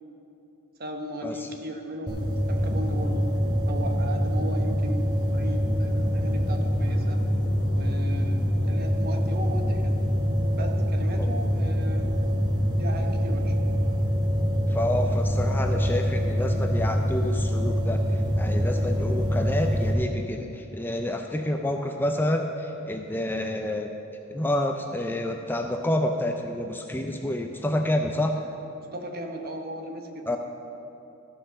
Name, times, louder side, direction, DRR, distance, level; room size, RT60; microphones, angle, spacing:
voice 1, 0.8-3.3 3.7-7.2 7.7-10.0 10.5-12.1 12.8-13.5 28.3-30.4, equal, 45° right, 4 dB, 1.0 m, -37 dB
sound 1, 2.1-19.9, equal, 20° right, 1.4 m, -25 dB
voice 2, 14.7-18.0 18.4-23.9 24.3-28.4 30.3-30.4, left 1 dB, 10° left, 4 dB, 0.4 m, -28 dB
13.5 x 5.7 x 6.6 m, 2.9 s
head